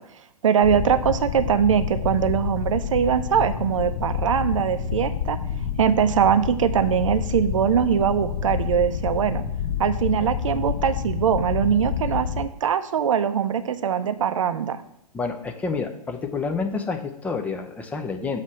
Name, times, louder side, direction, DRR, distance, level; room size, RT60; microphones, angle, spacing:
voice 1, 0.4-5.4 5.8-9.4 9.8-14.8, right 8 dB, 55° right, 10 dB, 0.6 m, -22 dB
sound 1, 0.6-12.5, left 8 dB, 55° left, 0.8 m, -28 dB
voice 2, 15.1-18.4, left 4 dB, 5° left, 5 dB, 0.5 m, -28 dB
7.2 x 3.3 x 6.0 m, 0.83 s
figure-of-eight pair, 115°, 20 cm